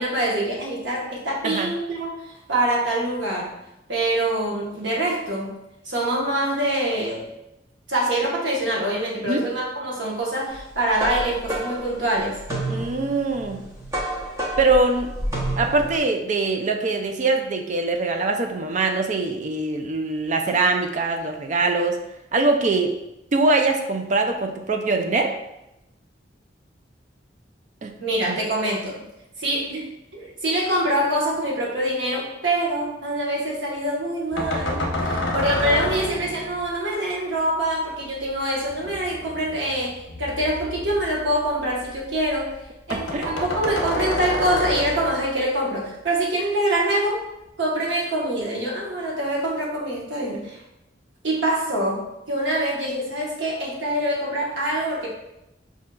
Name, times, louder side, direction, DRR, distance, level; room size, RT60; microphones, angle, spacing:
voice 1, 0.0-3.5 3.9-5.6 5.8-7.2 7.9-12.4 28.0-29.0 29.4-29.9 30.1-42.5 42.9-47.2 47.6-50.6 51.2-55.1, right 1 dB, 75° right, -3 dB, 1.0 m, -25 dB
sound 1, 10.6-16.0, right 1 dB, 15° right, 0.7 m, -30 dB
voice 2, 12.7-13.6 14.6-15.1 15.6-22.0 22.3-22.9 23.3-25.3 27.8-27.9 28.3-28.4 42.9-43.3, right 3 dB, 45° right, 5 dB, 0.4 m, -22 dB
sound 2, 34.3-36.7 38.7-42.0 42.3-42.4 42.6-42.7 42.9-45.4, left 1 dB, 85° left, 0.7 m, -29 dB
4.9 x 2.7 x 2.3 m, 0.88 s
head